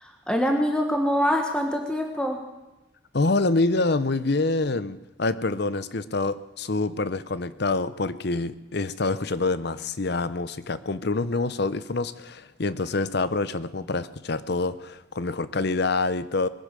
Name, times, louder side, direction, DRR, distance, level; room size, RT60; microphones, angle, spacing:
voice 1, 0.0-2.4, equal, 5° left, 3 dB, 1.4 m, -24 dB
voice 2, 3.1-16.5, left 3 dB, 55° left, 15 dB, 0.7 m, -26 dB
21.0 x 9.9 x 6.8 m, 1.0 s
head